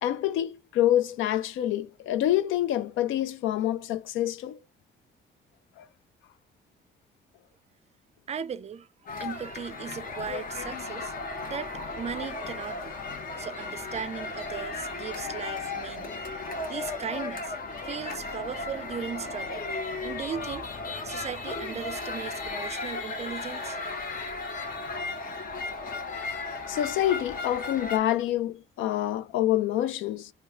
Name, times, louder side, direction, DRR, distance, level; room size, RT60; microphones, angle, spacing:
voice 1, 0.0-4.6 5.8-5.9 26.7-30.3, left 12 dB, 80° left, 0.4 m, -27 dB
voice 2, 8.3-8.9 9.2-11.1 11.4-13.0 13.4-16.2 16.7-17.5 17.8-19.6 20.0-20.7 21.0-23.8, right 7 dB, 35° right, 0.4 m, -37 dB
sound 1, 9.1-28.0, left 3 dB, 45° left, 0.8 m, -35 dB
3.0 x 2.2 x 3.6 m
cardioid pair, 90°, 20 cm